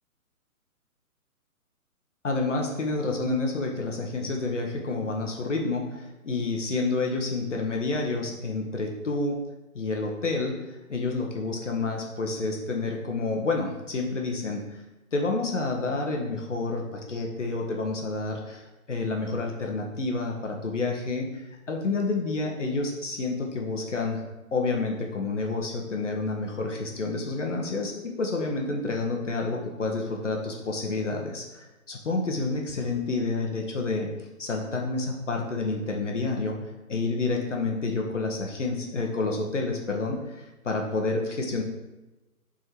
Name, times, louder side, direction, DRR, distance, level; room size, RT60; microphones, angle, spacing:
voice 1, 2.2-9.4 9.7-14.8 15.1-24.2 24.5-34.1 34.4-36.6 36.9-41.6, left 3 dB, 50° left, 1 dB, 1.0 m, -29 dB
6.2 x 3.8 x 4.4 m, 1.1 s
hypercardioid pair, 180°, 45 cm